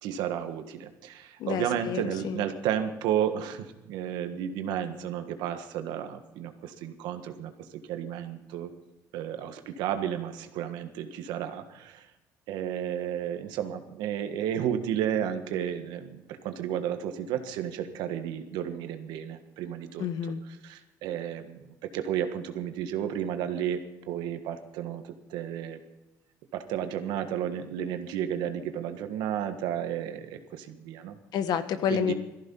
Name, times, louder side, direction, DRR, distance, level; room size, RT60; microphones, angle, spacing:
voice 1, 0.0-8.7 9.1-12.1 12.5-20.0 20.6-25.8 26.5-31.2 31.9-32.1, right 9 dB, 85° right, 7 dB, 1.5 m, -32 dB
voice 2, 1.4-2.4 20.0-20.4 31.3-32.1, left 8 dB, 70° left, 10 dB, 1.3 m, -29 dB
18.0 x 14.5 x 5.5 m, 1.0 s
supercardioid pair, 85°, 7 cm